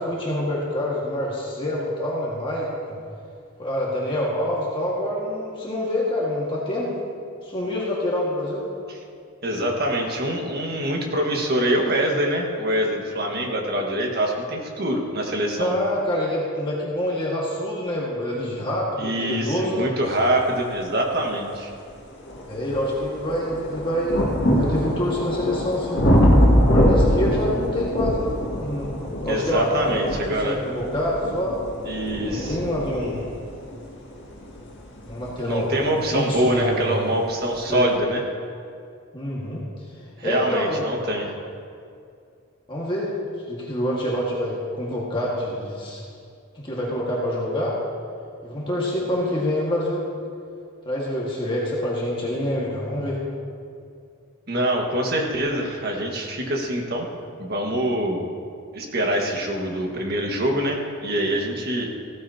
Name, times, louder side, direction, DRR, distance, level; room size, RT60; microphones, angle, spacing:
voice 1, 0.0-3.0 3.6-6.9 7.4-8.7 15.6-19.9 22.5-26.0 26.7-28.9 29.2-31.6 32.3-33.3 35.1-37.0 37.7-37.9 39.1-39.6 40.2-41.1 42.7-43.1 43.5-46.0 46.5-47.8 48.4-50.1 50.8-53.2, left 1 dB, 25° left, -5 dB, 1.7 m, -26 dB
voice 2, 9.4-15.7 19.0-21.7 29.3-30.6 31.8-32.6 35.4-38.2 40.2-41.3 54.5-57.1 57.4-58.2 58.7-61.9, right 1 dB, 45° right, 0 dB, 1.6 m, -24 dB
sound 1, 21.2-21.3 21.9-36.5 37.4-37.5, equal, 55° left, 2.1 m, -23 dB
15.5 x 14.0 x 2.8 m, 2.4 s
head